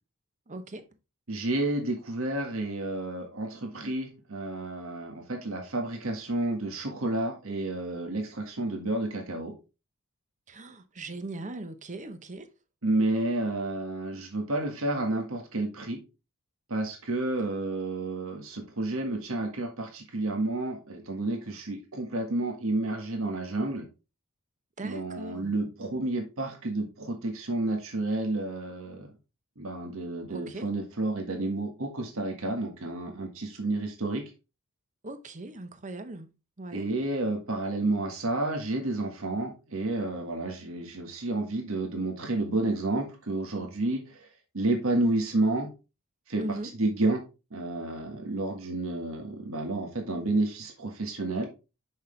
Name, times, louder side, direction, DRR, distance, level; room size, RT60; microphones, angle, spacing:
voice 1, 0.5-0.9 10.5-12.5 24.8-25.5 30.3-30.7 35.0-36.3 36.6-36.9 46.4-46.7, right 2 dB, 35° right, 0.8 m, -39 dB
voice 2, 1.3-9.5 12.8-16.0 16.7-23.9 24.8-29.1 29.6-34.2 36.7-44.3 44.5-45.7 46.3-47.2 47.5-51.5, right 2 dB, 70° right, 1.6 m, -30 dB
6.4 x 5.7 x 3.2 m
head